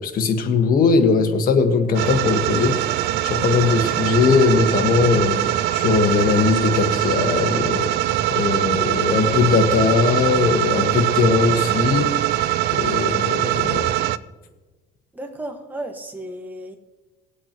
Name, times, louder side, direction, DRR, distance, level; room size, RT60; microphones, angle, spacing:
voice 1, 0.0-2.7 3.2-7.9 8.3-12.1 12.7-13.9, left 5 dB, 55° left, 5 dB, 1.5 m, -19 dB
sound 1, 1.9-14.2, right 14 dB, 75° right, 0.4 m, -22 dB
voice 2, 15.1-16.8, right 1 dB, 10° right, 3 dB, 1.5 m, -33 dB
19.5 x 8.2 x 3.0 m, 1.2 s
cardioid pair, 110°, 17 cm